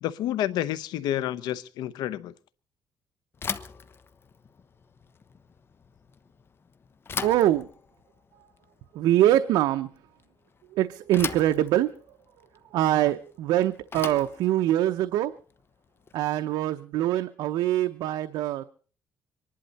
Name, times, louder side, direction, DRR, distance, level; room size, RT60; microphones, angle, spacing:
voice 1, 0.0-2.3, left 12 dB, 90° left, 0.8 m, -29 dB
Bicycle / Thump thud, 3.3-16.4, left 5 dB, 35° left, 1.0 m, -40 dB
voice 2, 7.2-7.7 8.9-9.9 10.7-12.0 12.7-15.3 16.1-18.6, right 13 dB, 90° right, 0.7 m, -24 dB
25.0 x 11.5 x 4.1 m
cardioid pair, 115°, 7 cm